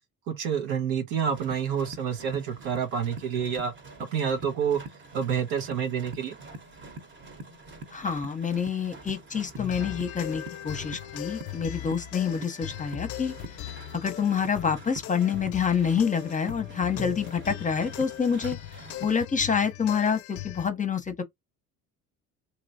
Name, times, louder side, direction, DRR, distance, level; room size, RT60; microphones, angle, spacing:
voice 1, 0.3-3.7 4.0-4.8 5.1-6.4, right 7 dB, 85° right, 1.0 m, -28 dB
sound 1, 1.3-19.2, right 2 dB, 30° right, 1.1 m, -45 dB
voice 2, 7.9-13.3 13.6-18.6 19.0-21.2, left 6 dB, 20° left, 0.8 m, -27 dB
sound 2, 9.6-20.7, left 14 dB, 55° left, 0.5 m, -39 dB
3.0 x 2.9 x 2.8 m
supercardioid pair, 70°, 36 cm